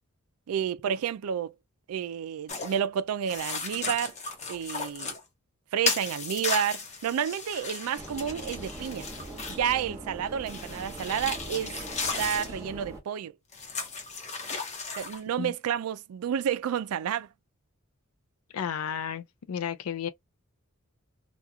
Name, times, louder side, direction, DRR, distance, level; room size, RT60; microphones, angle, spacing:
voice 1, 0.5-1.5 1.9-4.1 4.5-5.1 5.7-9.1 9.6-11.8 12.2-13.4 15.0-17.3, right 8 dB, 85° right, 0.3 m, -30 dB
sound 1, 2.5-2.8 3.3-5.2 5.8-9.7 10.5-12.5 13.5-15.2, left 4 dB, 35° left, 0.9 m, -35 dB
sound 2, 7.9-13.0, right 1 dB, 15° right, 1.0 m, -42 dB
voice 2, 18.5-20.1, left 8 dB, 80° left, 0.4 m, -33 dB
2.9 x 2.4 x 2.2 m
head